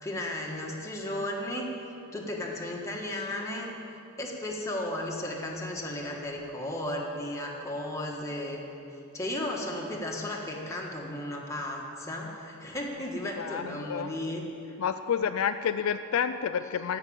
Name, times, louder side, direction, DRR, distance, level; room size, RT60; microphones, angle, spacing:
voice 1, 0.0-1.7 2.1-3.7 4.2-8.6 9.1-14.4, left 1 dB, 15° left, -1 dB, 1.5 m, -34 dB
voice 2, 13.4-14.1 14.8-17.0, left 7 dB, 65° left, 10 dB, 0.3 m, -29 dB
13.5 x 6.0 x 8.8 m, 2.8 s
head